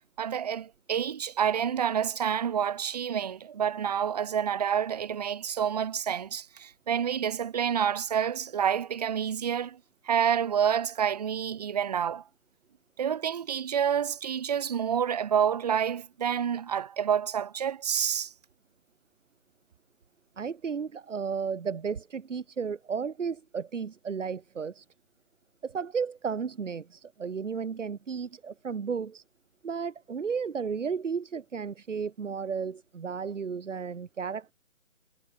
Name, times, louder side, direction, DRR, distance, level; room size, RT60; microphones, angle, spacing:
voice 1, 0.2-9.8 10.0-12.2 13.0-18.3, right 8 dB, 30° right, 1.4 m, -28 dB
voice 2, 20.4-24.8 25.6-29.2 29.6-34.5, right 6 dB, 70° right, 1.5 m, -33 dB
hypercardioid pair, 165°, 39 cm